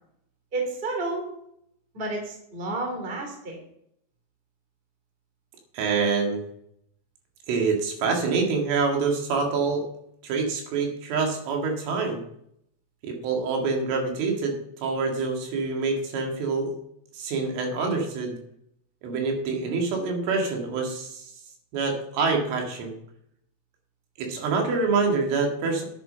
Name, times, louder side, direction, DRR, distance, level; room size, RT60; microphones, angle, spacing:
voice 1, 0.5-1.2 1.9-3.6, right 2 dB, 15° right, 2 dB, 2.0 m, -30 dB
voice 2, 5.7-6.4 7.5-9.9 10.2-12.2 13.0-14.6 14.8-16.7 17.1-18.4 19.0-21.3 21.7-22.9 24.2-25.9, right 4 dB, 75° right, 2 dB, 4.5 m, -26 dB
11.0 x 8.4 x 5.7 m, 0.72 s
omnidirectional pair, 5.8 m